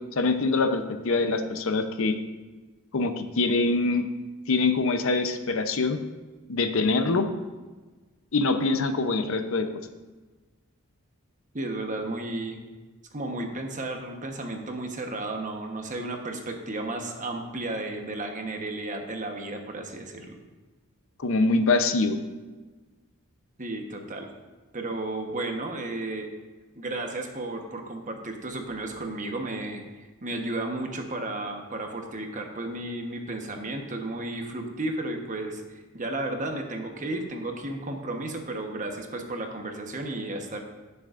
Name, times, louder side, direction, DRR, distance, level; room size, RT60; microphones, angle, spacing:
voice 1, 0.2-2.1 2.9-4.1 4.5-6.0 6.5-7.3 8.3-9.7 21.2-22.2, left 3 dB, 65° left, 8 dB, 0.7 m, -24 dB
voice 2, 11.5-12.6 13.1-20.4 23.6-24.3 24.7-26.3 26.8-29.8 30.2-35.6 35.9-40.6, right 2 dB, 35° right, 3 dB, 1.1 m, -33 dB
17.0 x 6.9 x 2.5 m, 1.3 s
head